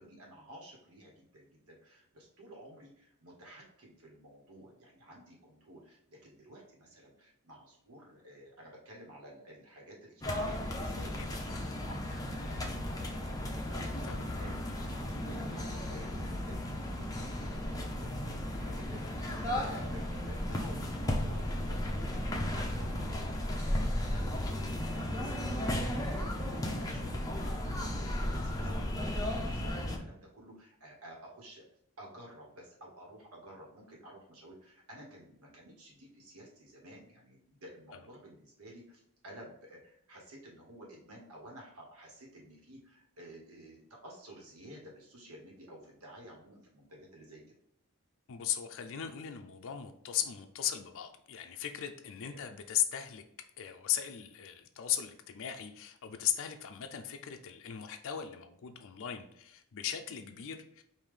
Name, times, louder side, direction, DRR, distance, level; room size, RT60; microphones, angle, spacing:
voice 1, 0.0-25.8 26.1-31.6 32.0-47.4 52.3-52.5, right 1 dB, 70° right, -2 dB, 1.4 m, -53 dB
sound 1, 10.2-30.0, left 1 dB, 15° left, 0.7 m, -35 dB
voice 2, 48.3-53.2 53.6-60.8, left 10 dB, 60° left, 5 dB, 0.4 m, -37 dB
4.9 x 2.6 x 3.7 m, 0.73 s
head